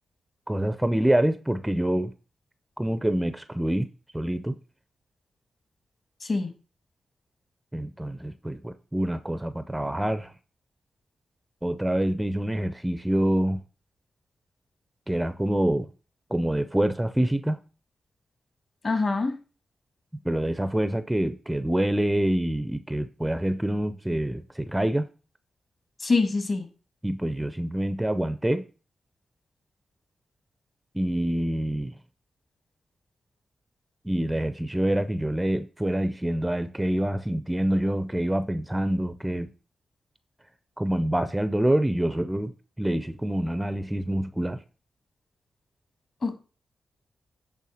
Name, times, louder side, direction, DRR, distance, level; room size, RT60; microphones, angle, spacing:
voice 1, 0.5-2.1 2.8-3.9 4.1-4.6 7.7-10.3 11.6-13.6 15.1-15.9 16.3-17.6 20.2-25.1 27.0-28.6 30.9-32.0 34.0-39.5 40.8-44.6, right 1 dB, 10° right, 0.4 m, -26 dB
voice 2, 18.8-19.4 26.0-26.6 46.2-46.4, left 3 dB, 45° left, 1.6 m, -25 dB
8.4 x 3.6 x 6.2 m
wide cardioid pair, 115°, 0 cm